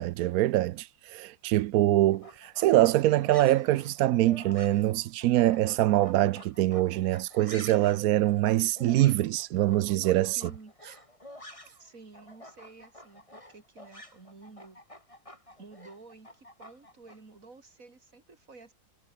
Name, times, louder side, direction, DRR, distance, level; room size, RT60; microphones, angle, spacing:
voice 1, 0.0-10.4, right 15 dB, 70° right, 1.0 m, -24 dB
sound 1, 2.1-11.9 12.1-17.2, left 1 dB, 20° left, 6.0 m, -50 dB
voice 2, 10.4-10.7 11.8-14.8 15.6-18.7, right 3 dB, 55° right, 3.7 m, -51 dB
omnidirectional pair, 1.7 m